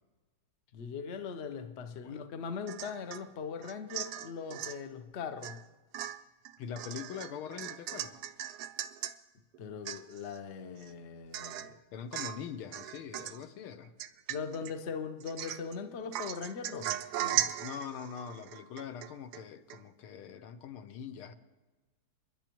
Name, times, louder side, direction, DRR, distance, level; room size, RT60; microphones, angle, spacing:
voice 1, 0.7-5.6 9.6-11.8 14.3-17.5, left 6 dB, 65° left, 0.6 m, -40 dB
Domestic sounds home sounds / Chink clink / Drip, 2.7-3.3 3.6-4.8 5.4-5.6 5.9-9.2 9.5-9.6 9.9-10.4 10.8-10.9 11.3-11.8 12.1-12.5 12.7-13.4 14.0-14.7 15.2-15.8 16.1-19.4 19.7-19.8, right 12 dB, 85° right, 0.8 m, -38 dB
voice 2, 6.6-8.2 11.9-13.9 17.6-21.3, left 7 dB, 85° left, 1.7 m, -43 dB
29.5 x 10.5 x 3.0 m
omnidirectional pair, 2.3 m